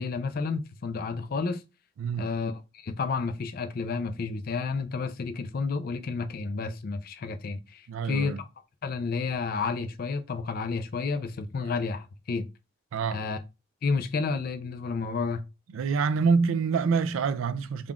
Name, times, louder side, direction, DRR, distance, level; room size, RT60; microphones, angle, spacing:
voice 1, 0.0-1.6 2.2-8.5 8.8-12.5 13.1-13.4 13.8-15.4, left 4 dB, 45° left, 0.4 m, -31 dB
voice 2, 2.0-2.3 7.9-8.4 12.9-13.2 15.7-17.9, right 5 dB, 80° right, 0.4 m, -26 dB
3.7 x 2.3 x 3.5 m
head